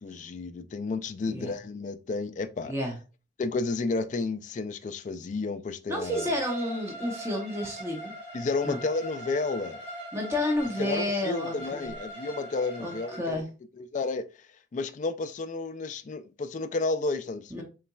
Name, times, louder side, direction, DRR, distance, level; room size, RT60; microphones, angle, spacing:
voice 1, 0.0-2.7 3.4-6.2 8.3-9.8 10.8-13.4 13.8-14.3 14.7-17.6, left 3 dB, 40° left, 0.3 m, -31 dB
voice 2, 2.7-3.0 5.9-8.1 8.6-8.8 10.1-11.9 12.8-13.5 17.5-17.6, left 1 dB, 15° right, 0.7 m, -31 dB
Bowed string instrument, 6.0-13.2, equal, 35° right, 2.2 m, -41 dB
4.1 x 3.8 x 2.3 m
head